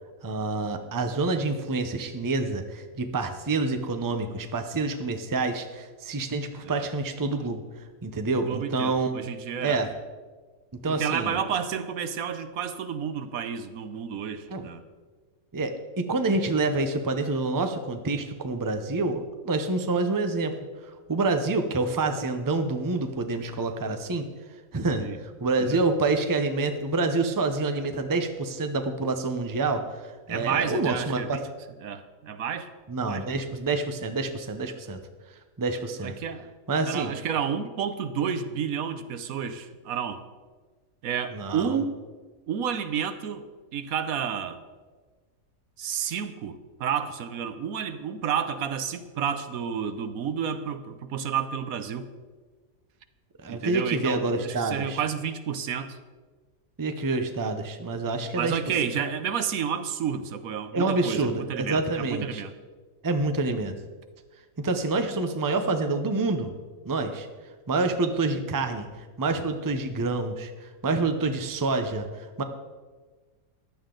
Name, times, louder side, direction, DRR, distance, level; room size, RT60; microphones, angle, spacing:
voice 1, 0.2-7.6 8.0-9.3 9.6-9.9 10.8-11.4 14.5-14.7 15.5-20.5 21.1-24.2 24.7-25.1 25.4-31.4 32.9-35.0 35.6-36.1 36.7-37.1 41.3-41.8 53.4-55.0 56.8-58.6 60.7-62.4 63.0-63.7 64.6-66.5 66.8-67.3 67.7-68.9 69.2-72.4, right 3 dB, 20° right, 7 dB, 0.6 m, -27 dB
voice 2, 8.3-9.8 10.9-14.8 25.0-25.2 25.6-25.8 30.3-31.4 31.8-32.7 33.1-33.2 36.0-36.5 36.8-40.2 41.0-41.9 42.5-43.5 43.7-44.6 45.8-52.1 53.5-56.0 58.4-62.5, right 7 dB, 75° right, 11 dB, 1.2 m, -30 dB
15.0 x 11.0 x 3.9 m, 1.4 s
omnidirectional pair, 1.5 m